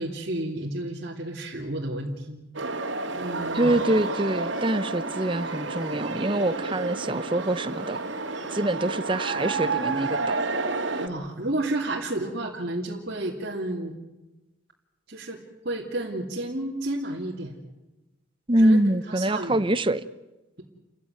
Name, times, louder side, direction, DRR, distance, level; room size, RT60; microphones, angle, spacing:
voice 1, 0.0-2.4 3.2-3.8 11.0-13.9 15.1-17.6 18.6-18.8 19.1-19.6, right 1 dB, 55° right, -3 dB, 2.8 m, -31 dB
sound 1, 2.5-11.1, right 3 dB, 75° right, 2.6 m, -30 dB
voice 2, 3.5-8.0 8.5-10.4 18.5-20.0, right 1 dB, 25° right, 14 dB, 0.9 m, -24 dB
29.5 x 15.5 x 9.2 m, 1.1 s
head